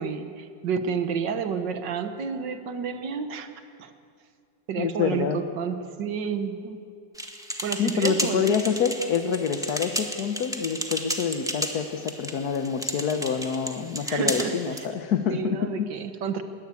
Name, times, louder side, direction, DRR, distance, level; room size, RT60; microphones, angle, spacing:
voice 1, 0.0-3.5 3.8-3.9 4.7-6.8 7.6-8.6 14.0-14.9 15.3-16.4, right 6 dB, 80° right, 8 dB, 1.9 m, -30 dB
voice 2, 4.8-5.5 7.8-15.9, left 7 dB, 65° left, 7 dB, 1.4 m, -27 dB
sound 1, 7.2-14.9, equal, ahead, 1.3 m, -33 dB
21.0 x 18.0 x 8.3 m, 2.3 s
omnidirectional pair, 1.9 m